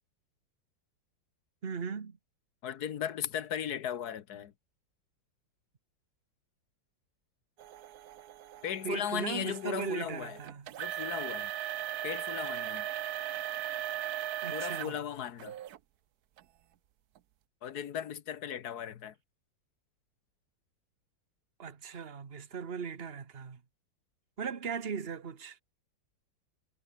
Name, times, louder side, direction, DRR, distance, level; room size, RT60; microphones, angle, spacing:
voice 1, 1.6-2.2 8.8-10.7 14.4-14.9 21.6-23.6 24.4-25.6, right 6 dB, 35° right, 1.6 m, -38 dB
voice 2, 2.6-4.5 8.6-10.4 10.8-11.5 12.0-12.9 14.5-15.5 17.6-19.1, left 9 dB, 60° left, 1.5 m, -37 dB
sound 1, 7.6-15.0 15.4-15.8 16.4-16.5 17.2-17.3, right 11 dB, 65° right, 1.2 m, -38 dB
omnidirectional pair, 2.0 m